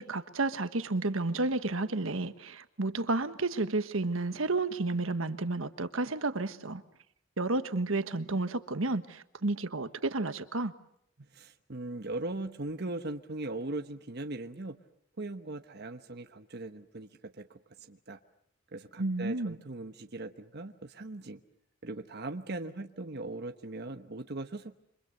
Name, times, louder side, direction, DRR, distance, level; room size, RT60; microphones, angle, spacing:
voice 1, 0.0-6.8 7.4-10.7 19.0-19.5, right 2 dB, 75° right, 11 dB, 1.4 m, -31 dB
voice 2, 11.3-14.8 15.2-18.2 18.7-21.4 21.8-24.8, right 2 dB, 55° right, 6 dB, 1.1 m, -39 dB
28.5 x 25.5 x 6.6 m, 0.71 s
head